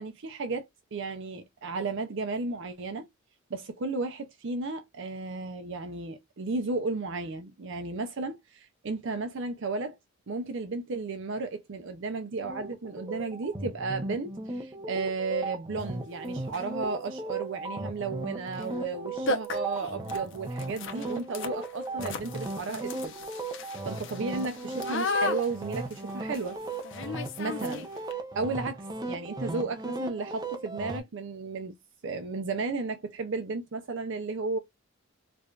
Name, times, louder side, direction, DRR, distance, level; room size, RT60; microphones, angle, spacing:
voice 1, 0.0-3.1 3.5-10.0 10.3-23.1 23.8-26.6 27.4-27.9 28.3-31.8 32.0-34.6, right 3 dB, 60° right, 0.5 m, -34 dB
sound 1, 12.4-31.0, right 2 dB, 20° right, 0.7 m, -37 dB
sound 2, 15.8-15.9 16.4-16.8 18.5-18.7 18.9-19.0 19.3-28.1, left 3 dB, 60° left, 0.7 m, -36 dB
4.7 x 2.4 x 2.3 m
head